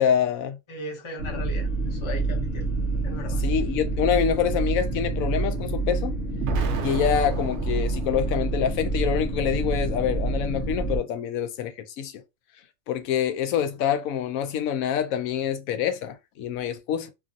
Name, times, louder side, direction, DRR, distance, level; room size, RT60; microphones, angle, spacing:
voice 1, 0.0-0.6 3.4-6.2 6.8-12.2 12.9-17.1, left 9 dB, 85° left, 1.0 m, -26 dB
voice 2, 0.7-2.7 3.0-3.4, left 2 dB, 30° left, 0.6 m, -37 dB
sound 1, 1.2-11.0, right 3 dB, 45° left, 1.3 m, -27 dB
Explosion, 6.4-8.5, right 5 dB, 65° right, 0.8 m, -33 dB
3.0 x 2.4 x 2.6 m
omnidirectional pair, 1.4 m